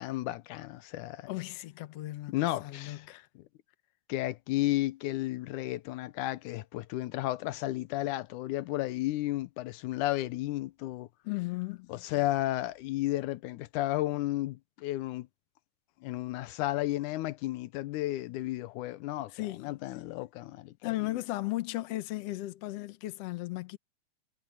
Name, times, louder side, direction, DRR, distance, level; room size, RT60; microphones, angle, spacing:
voice 1, 0.0-1.3 2.3-3.1 4.1-11.1 11.9-15.3 16.0-19.3 19.6-20.7, left 16 dB, 85° left, 2.2 m, -33 dB
voice 2, 1.3-3.3 11.2-11.9 19.3-19.7 20.8-23.8, left 18 dB, 65° left, 1.8 m, -36 dB
omnidirectional pair, 3.5 m